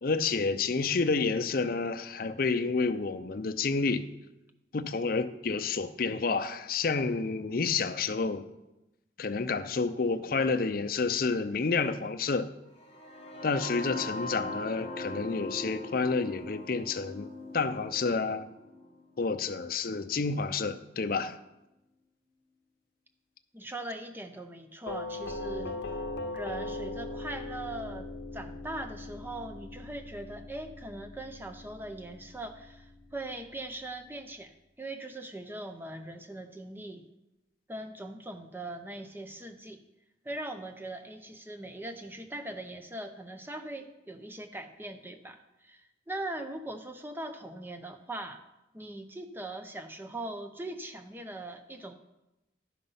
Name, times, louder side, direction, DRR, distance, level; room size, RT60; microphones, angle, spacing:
voice 1, 0.0-4.1 4.7-8.5 9.2-12.5 13.4-18.5 19.2-21.4, left 4 dB, 50° left, 0.5 m, -29 dB
sound 1, 12.8-20.7, left 2 dB, 30° left, 1.3 m, -41 dB
voice 2, 23.5-25.9 26.3-28.1 28.3-37.0 37.7-39.8 40.2-45.8 46.1-48.4 48.7-51.9, right 1 dB, 10° right, 0.6 m, -40 dB
Doorbell, 24.9-33.7, left 2 dB, 75° left, 0.8 m, -40 dB
11.0 x 5.5 x 5.5 m
head